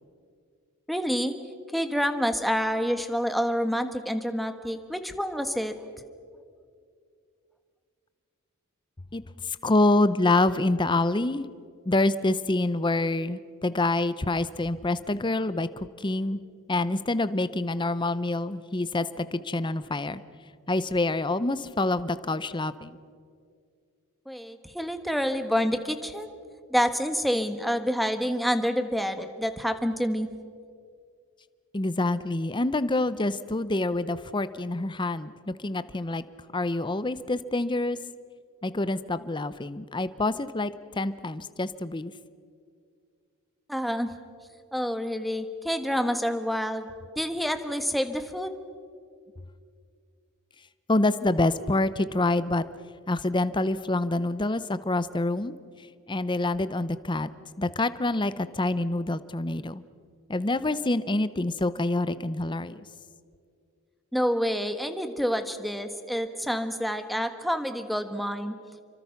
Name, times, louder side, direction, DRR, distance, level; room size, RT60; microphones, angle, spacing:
voice 1, 0.9-1.3 1.7-5.7 24.3-26.3 26.7-30.3 43.7-44.1 44.7-48.5 64.1-68.5, equal, ahead, 8 dB, 1.3 m, -28 dB
voice 2, 9.1-11.5 11.9-16.4 16.7-20.2 20.7-23.0 31.7-36.2 36.5-38.0 38.6-42.1 50.9-52.6 53.1-55.6 56.1-57.3 57.6-59.8 60.3-62.8, left 2 dB, 20° left, 14 dB, 0.7 m, -26 dB
28.0 x 24.5 x 5.9 m, 2.2 s
head